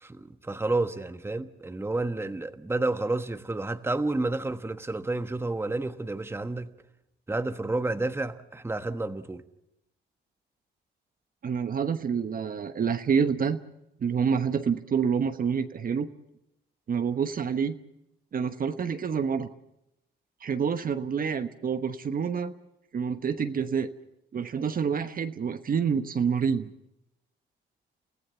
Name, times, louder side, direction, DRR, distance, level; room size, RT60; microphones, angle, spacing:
voice 1, 0.0-6.7 7.3-9.4, right 2 dB, 10° right, 1.2 m, -30 dB
voice 2, 11.4-13.6 14.0-16.1 16.9-17.8 18.3-19.5 20.4-22.5 22.9-23.9 24.3-26.7, right 6 dB, 45° right, 1.1 m, -27 dB
30.0 x 15.5 x 7.0 m
cardioid pair, 90°, 20 cm